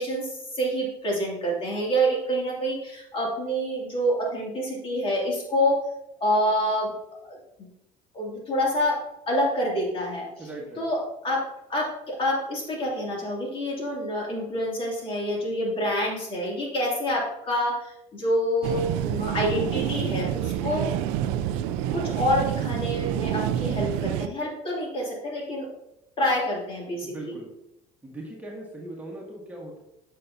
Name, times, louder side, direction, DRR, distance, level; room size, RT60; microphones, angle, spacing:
voice 1, 0.0-5.8 6.2-6.9 7.3-7.4 8.1-9.0 9.3-10.3 10.8-11.4 11.7-20.9 21.9-25.7 26.2-27.4, equal, 35° left, -2 dB, 2.6 m, -27 dB
voice 2, 10.4-10.8 27.0-27.5 28.0-29.8, right 1 dB, 10° right, -3 dB, 1.6 m, -39 dB
sound 1, 18.6-24.3, right 11 dB, 85° right, 0.4 m, -28 dB
8.2 x 5.7 x 2.7 m, 0.85 s
supercardioid pair, 105°, 15 cm